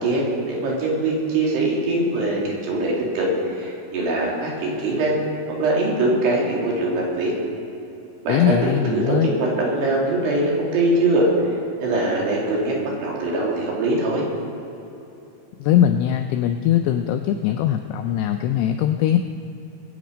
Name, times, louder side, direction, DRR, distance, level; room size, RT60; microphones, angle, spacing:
voice 1, 0.0-5.3 5.6-7.3 8.2-11.3 11.8-14.2, right 2 dB, 65° right, -3 dB, 4.4 m, -22 dB
voice 2, 8.3-9.4 15.6-19.2, left 10 dB, 85° left, 6 dB, 2.4 m, -20 dB
22.5 x 8.8 x 5.2 m, 3.0 s
omnidirectional pair, 5.3 m